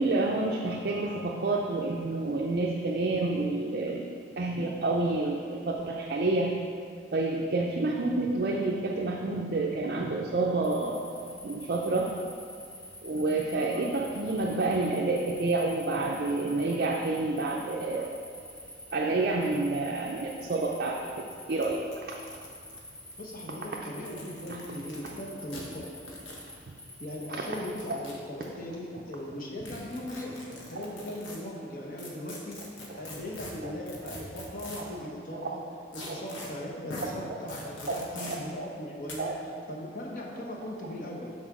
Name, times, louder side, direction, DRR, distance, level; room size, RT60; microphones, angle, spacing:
voice 1, 0.0-4.1 4.4-6.5 7.1-11.0 11.4-12.1 13.0-18.2 18.9-21.0 21.5-21.8 27.4-27.5 27.9-28.0 33.6-33.7 35.3-35.5 36.1-36.2 38.2-38.4 39.2-39.3, right 2 dB, 50° right, -2 dB, 0.5 m, -28 dB
sound 1, 10.6-28.0, left 1 dB, 5° left, 0.3 m, -48 dB
sound 2, 20.8-20.9 21.1-21.2 21.6-21.7 21.9-23.3 23.9-25.1 25.5-25.6 26.1-26.4 27.5-28.4 29.6-31.4 32.0-35.0 35.9-36.5 36.9-37.1 37.5-38.4 39.1-39.2, left 2 dB, 85° left, 1.2 m, -43 dB
voice 2, 23.2-25.9 27.0-30.4 30.7-32.6 32.9-35.6 35.9-39.3 39.7-41.3, left 1 dB, 45° left, -2 dB, 1.0 m, -39 dB
5.9 x 4.2 x 6.1 m, 2.3 s
head